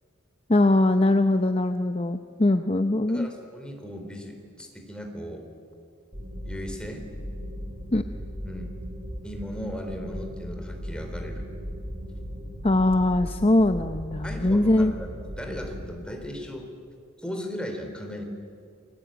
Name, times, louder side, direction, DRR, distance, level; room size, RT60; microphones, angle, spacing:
voice 1, 0.5-3.3 7.9-8.0 12.6-14.9, left 2 dB, 30° left, 8 dB, 0.7 m, -21 dB
voice 2, 3.1-5.5 6.4-7.1 8.4-8.8 9.2-11.5 14.2-15.1 15.4-16.7 17.2-18.2, equal, 5° left, 3 dB, 3.7 m, -37 dB
sound 1, 6.1-15.9, equal, 35° right, 5.2 m, -37 dB
28.5 x 21.5 x 9.0 m, 2.3 s
head